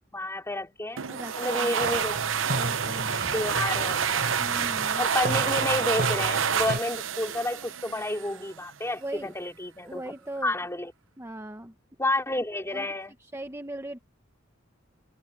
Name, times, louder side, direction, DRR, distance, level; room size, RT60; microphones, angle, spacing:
voice 1, 0.1-1.0 1.4-2.1 2.5-2.6 3.3-4.4 5.0-10.0 10.4-10.9 12.0-13.1, left 1 dB, 15° left, 3.5 m, -30 dB
sound 1, 1.0-8.4, right 7 dB, 70° right, 0.9 m, -28 dB
voice 2, 1.1-2.2 2.5-3.3 4.4-5.1 9.0-9.3 9.8-10.6 11.2-11.7 12.7-12.9 13.3-14.0, right 1 dB, 15° right, 1.4 m, -39 dB
sound 2, 1.8-6.8, right 2 dB, 55° right, 3.3 m, -34 dB
head